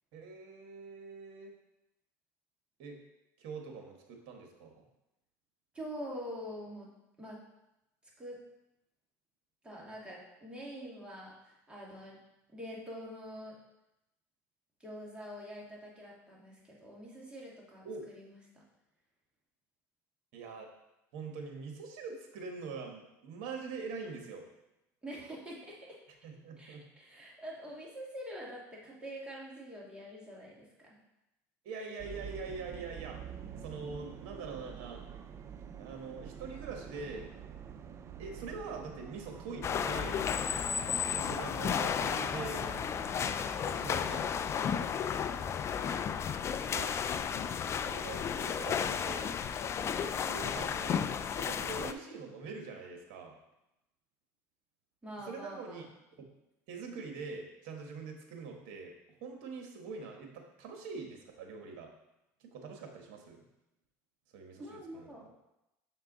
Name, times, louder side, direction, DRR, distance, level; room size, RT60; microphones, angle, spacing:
voice 1, 0.1-1.5 2.8-3.0 3.4-4.8 17.8-18.1 20.3-20.7 21.1-24.5 26.2-26.8 31.6-33.2 33.6-35.0 35.8-37.3 38.2-40.3 41.1-42.7 43.6-44.9 46.7-47.0 47.6-49.4 50.0-53.3 55.2-55.8 56.7-58.9 59.2-61.9 62.4-63.4 64.3-65.3, right 4 dB, 70° right, 3 dB, 1.3 m, -44 dB
voice 2, 5.7-6.9 7.2-7.4 8.2-8.4 9.6-12.2 12.5-13.6 14.8-18.6 25.0-26.0 26.6-31.0 41.0-41.2 43.4-43.7 45.1-45.8 55.0-55.9 64.6-65.3, equal, 10° right, -4 dB, 2.2 m, -45 dB
sound 1, 32.0-43.2, right 7 dB, 35° right, 0.5 m, -47 dB
sound 2, 39.6-51.9, left 7 dB, 35° left, 0.4 m, -33 dB
6.7 x 4.6 x 3.9 m, 0.91 s
supercardioid pair, 100°, 8 cm